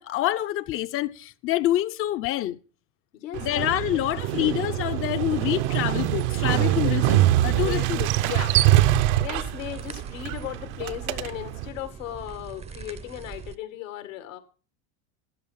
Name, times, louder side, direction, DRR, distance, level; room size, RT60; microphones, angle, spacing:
voice 1, 0.0-2.6 3.4-8.6, left 14 dB, 35° left, 0.6 m, -27 dB
voice 2, 3.1-3.7 4.4-4.6 6.7-7.0 7.5-7.9 9.2-14.4, left 12 dB, 90° left, 2.1 m, -37 dB
Motorcycle, 3.3-11.7, right 14 dB, 65° right, 0.8 m, -24 dB
sound 1, 7.9-13.6, right 5 dB, 15° right, 0.6 m, -41 dB
12.5 x 8.6 x 5.6 m
supercardioid pair, 120°, 38 cm